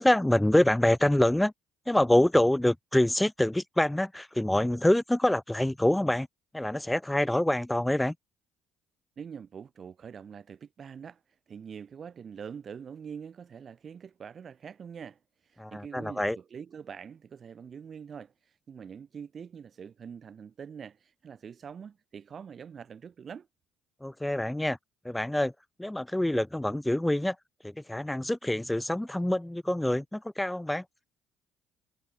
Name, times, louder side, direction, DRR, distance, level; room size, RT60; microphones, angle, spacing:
voice 1, 0.0-1.5 1.9-6.3 6.5-8.1 15.6-16.4 24.0-24.8 25.0-25.5 25.8-27.4 27.6-30.8, left 1 dB, 10° left, 0.7 m, -26 dB
voice 2, 9.2-23.5, right 7 dB, 45° right, 0.8 m, -44 dB
hypercardioid pair, 55°, 0 cm